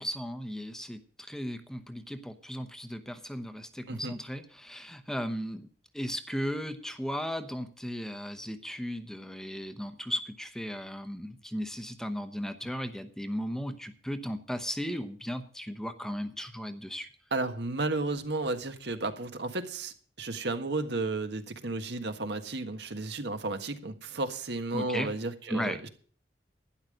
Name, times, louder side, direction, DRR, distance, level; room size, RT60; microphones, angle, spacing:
voice 1, 0.0-5.7 5.9-17.1 24.7-25.1 25.5-25.8, equal, 5° left, 9 dB, 0.9 m, -36 dB
voice 2, 17.3-25.9, right 2 dB, 70° right, 7 dB, 1.6 m, -33 dB
12.0 x 10.5 x 5.1 m, 0.44 s
head